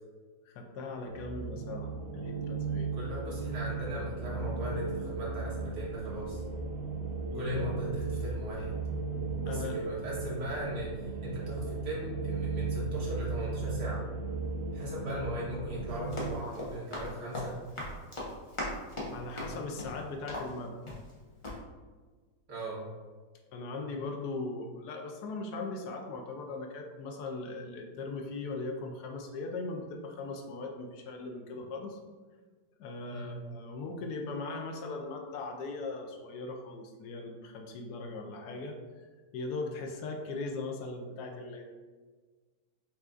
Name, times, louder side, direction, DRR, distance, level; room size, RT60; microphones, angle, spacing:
voice 1, 0.5-2.9 7.3-7.7 9.5-9.8 19.1-20.8 23.5-32.0 32.8-38.8 39.3-41.7, left 3 dB, 70° left, 3 dB, 1.0 m, -39 dB
sound 1, 1.0-16.3, right 4 dB, 85° right, 1.3 m, -36 dB
voice 2, 2.9-6.4 7.3-8.8 9.2-14.0 14.7-17.5 19.0-19.1 22.5-22.8 33.1-33.3, equal, 45° right, -6 dB, 1.4 m, -38 dB
Run, 15.9-21.2 21.4-21.6, left 1 dB, 50° left, 0.3 m, -39 dB
5.6 x 2.6 x 2.4 m, 1.4 s
omnidirectional pair, 1.9 m